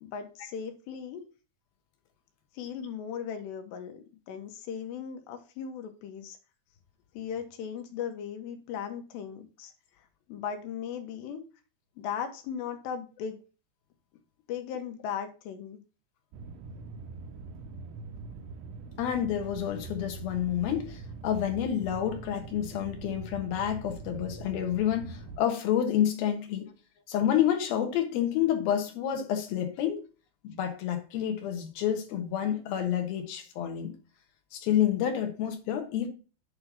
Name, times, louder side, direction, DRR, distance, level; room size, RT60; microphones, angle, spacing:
voice 1, 0.0-1.2 2.5-6.4 7.1-9.7 10.3-11.4 12.0-13.4 14.5-15.8, left 8 dB, 90° left, 3.3 m, -37 dB
sound 1, 16.3-25.4, right 4 dB, 90° right, 2.8 m, -43 dB
voice 2, 19.0-26.7 27.1-30.0 30.4-33.9 34.5-36.1, left 10 dB, 70° left, 2.8 m, -29 dB
8.5 x 3.3 x 6.0 m
omnidirectional pair, 4.9 m